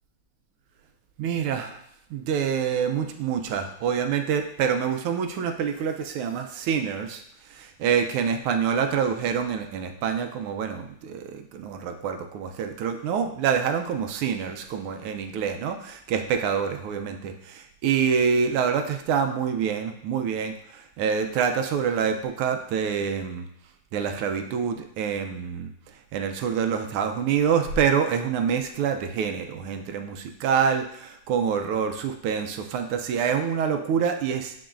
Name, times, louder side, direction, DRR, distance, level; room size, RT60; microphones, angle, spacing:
voice 1, 1.2-1.8 2.1-7.2 7.5-23.5 23.9-25.7 26.1-34.5, right 7 dB, 85° right, 6 dB, 1.5 m, -26 dB
10.0 x 3.9 x 2.5 m, 0.74 s
omnidirectional pair, 2.4 m